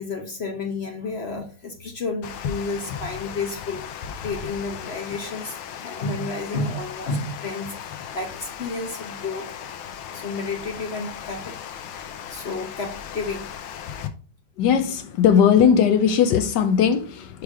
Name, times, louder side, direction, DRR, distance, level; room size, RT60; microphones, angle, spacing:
voice 1, 0.0-9.5 10.1-11.6 11.9-13.5, left 3 dB, 50° left, 0.7 m, -31 dB
Water, 2.2-14.1, left 8 dB, 90° left, 1.6 m, -36 dB
voice 2, 14.6-17.4, left 7 dB, 70° left, 1.1 m, -18 dB
4.9 x 4.6 x 4.9 m
omnidirectional pair, 2.2 m